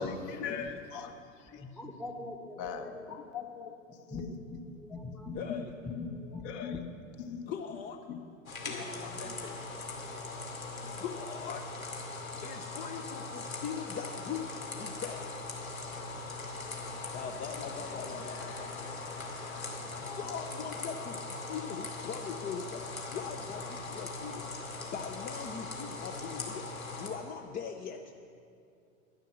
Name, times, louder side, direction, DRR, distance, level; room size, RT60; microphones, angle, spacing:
voice 1, 0.0-1.6 2.6-3.8 5.5-5.6 6.4-6.7 7.3-7.4 8.1-8.2 8.6-9.2 10.1-10.2, left 6 dB, 45° left, 6 dB, 1.4 m, -40 dB
voice 2, 1.6-3.2 4.1-6.8 7.5-7.6 8.8-9.8, left 2 dB, ahead, 3 dB, 0.9 m, -43 dB
voice 3, 7.5-8.0 9.2-9.3 11.0-11.6 12.4-13.2 13.6-14.4 14.8-15.2 17.1-18.5 20.2-20.9 21.5-22.6 23.1-23.6 23.9-24.3 24.9-26.4 27.0-28.0, left 7 dB, 20° left, 5 dB, 0.5 m, -40 dB
sound 1, 8.5-27.1, left 3 dB, 85° left, 2.5 m, -40 dB
sound 2, 13.9-20.7, left 3 dB, 70° left, 3.3 m, -51 dB
12.0 x 11.0 x 6.2 m, 2.5 s
hypercardioid pair, 100°, 40 cm